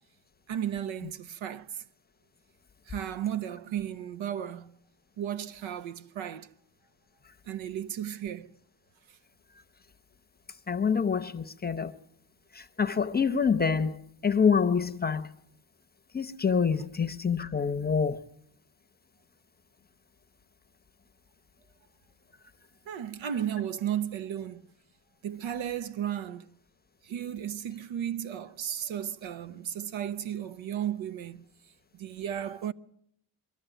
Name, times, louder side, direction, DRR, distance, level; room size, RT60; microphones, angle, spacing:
voice 1, 0.5-1.8 2.9-4.7 5.2-6.5 7.5-8.5 22.9-24.6 25.2-26.5 27.0-31.4 31.9-32.7, right 10 dB, 75° right, 0.9 m, -34 dB
voice 2, 10.7-11.9 12.6-14.0 14.2-15.3 16.1-18.2, left 6 dB, 20° left, 0.8 m, -26 dB
23.5 x 13.0 x 9.1 m
cardioid pair, 115°, 47 cm